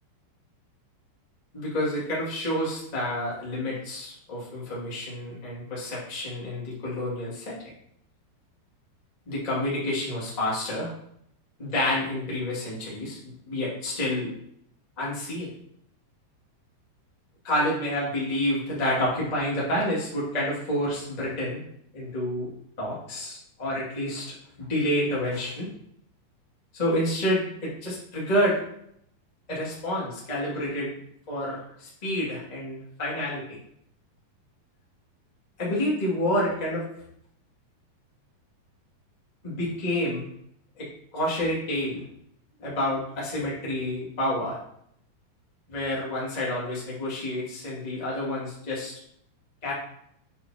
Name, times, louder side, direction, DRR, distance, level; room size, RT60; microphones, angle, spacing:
voice 1, 1.5-7.5 9.2-10.9 11.6-13.2 13.5-14.3 15.0-15.5 17.4-21.6 21.9-22.5 22.8-24.2 24.6-25.7 26.7-28.6 29.5-30.9 31.3-33.6 35.6-36.9 39.4-40.3 40.8-40.9 41.1-42.0 42.6-44.6 45.7-48.9 49.6-49.7, left 1 dB, 20° left, -6 dB, 1.3 m, -28 dB
8.5 x 5.4 x 3.0 m, 0.71 s
omnidirectional pair, 4.9 m